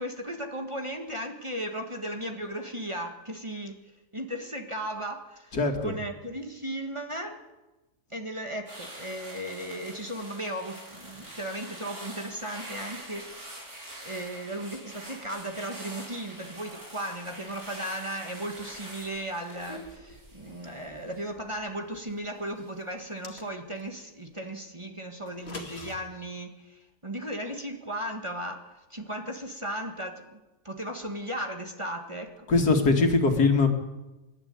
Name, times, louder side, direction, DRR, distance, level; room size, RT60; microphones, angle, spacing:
voice 1, 0.0-3.8 4.1-5.6 5.8-7.4 8.1-13.5 14.0-30.4 30.6-32.5, right 1 dB, 20° right, 4 dB, 1.7 m, -36 dB
voice 2, 5.5-5.9 32.5-33.7, left 3 dB, 80° left, 4 dB, 2.7 m, -22 dB
sound 1, 8.7-22.0 22.4-22.7, right 1 dB, 70° right, 5.8 m, -45 dB
sound 2, 23.0-23.9 25.3-26.0, left 3 dB, 40° left, 2.5 m, -42 dB
26.5 x 12.0 x 9.6 m, 1.1 s
omnidirectional pair, 1.6 m